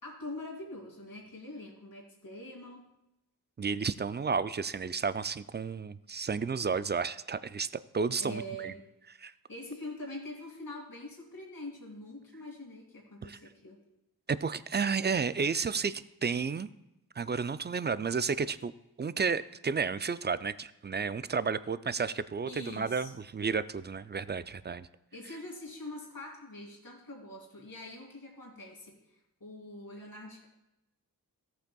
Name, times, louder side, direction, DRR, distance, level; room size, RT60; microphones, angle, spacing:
voice 1, 0.0-2.9 8.2-8.8 9.5-13.8 22.5-23.1 25.1-29.0 29.4-30.5, left 1 dB, 60° left, -2 dB, 2.6 m, -44 dB
voice 2, 3.6-7.7 7.9-8.7 9.2-9.3 13.2-13.4 14.3-16.7 17.2-18.7 19.0-24.9, right 5 dB, 30° right, 15 dB, 0.4 m, -32 dB
14.0 x 7.8 x 2.3 m, 0.90 s
cardioid pair, 45°, 39 cm